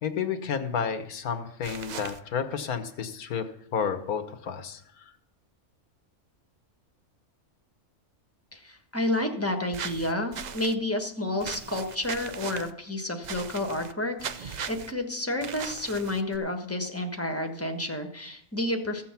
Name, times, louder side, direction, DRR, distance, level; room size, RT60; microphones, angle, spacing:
voice 1, 0.0-5.1, left 7 dB, 80° left, 9 dB, 1.6 m, -31 dB
sound 1, 1.6-2.2 9.7-10.7 11.4-12.7 13.2-13.9 14.2-14.9 15.4-16.4, right 7 dB, 80° right, 0.4 m, -38 dB
voice 2, 8.5-19.0, left 1 dB, 10° left, 4 dB, 1.3 m, -30 dB
15.0 x 7.5 x 5.8 m, 0.71 s
omnidirectional pair, 1.5 m